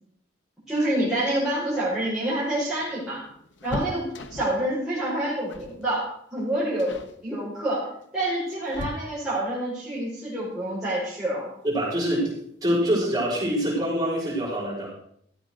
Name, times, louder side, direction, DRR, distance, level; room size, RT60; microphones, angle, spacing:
voice 1, 0.7-3.2 3.6-4.0 4.3-7.8 8.1-11.5, right 1 dB, 5° right, -10 dB, 5.2 m, -27 dB
sound 1, 2.0-4.7 5.5-5.8 6.1-6.4 6.8-7.2 8.0-9.5 11.2-11.3 11.7-11.8 13.0-13.4 13.7-13.8 14.1-14.3, left 2 dB, 75° left, 1.1 m, -39 dB
voice 2, 11.6-12.3 12.6-14.9, equal, 20° right, -7 dB, 5.9 m, -25 dB
14.0 x 8.0 x 6.5 m, 0.69 s
head